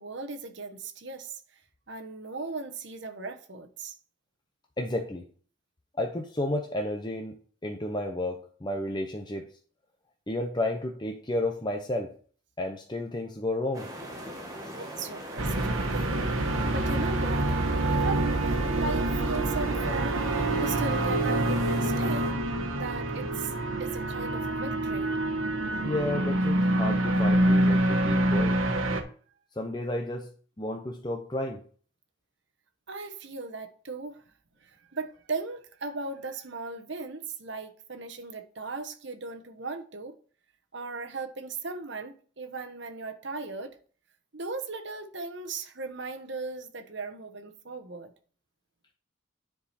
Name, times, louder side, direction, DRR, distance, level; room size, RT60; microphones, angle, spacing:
voice 1, 0.0-1.4 1.9-4.0 14.7-16.2 16.7-17.6 17.9-22.3 22.8-23.5 23.8-25.2 32.9-34.2 34.9-40.1 40.7-43.8 44.3-48.1, right 3 dB, 60° right, 1.1 m, -37 dB
voice 2, 4.8-5.3 6.0-7.3 7.6-9.5 10.3-12.1 12.6-13.9 14.6-14.9 17.9-18.0 25.8-28.6 29.6-30.3 30.6-31.6, left 1 dB, 20° left, 0.7 m, -32 dB
sound 1, 13.7-22.3, equal, 15° right, 1.5 m, -40 dB
sound 2, 15.4-29.0, right 1 dB, 85° right, 1.3 m, -26 dB
10.0 x 4.8 x 4.3 m
head